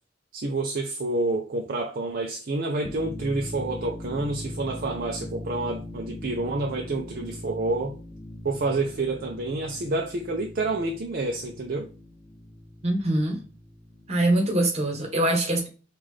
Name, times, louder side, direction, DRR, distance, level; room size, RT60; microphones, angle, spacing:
voice 1, 0.3-8.0 8.4-11.9, right 2 dB, 50° right, 0.5 m, -28 dB
sound 1, 2.8-14.3, left 1 dB, 5° left, 0.6 m, -40 dB
voice 2, 12.8-13.4 14.1-15.7, right 1 dB, 35° right, 1.1 m, -23 dB
5.5 x 2.5 x 3.3 m
head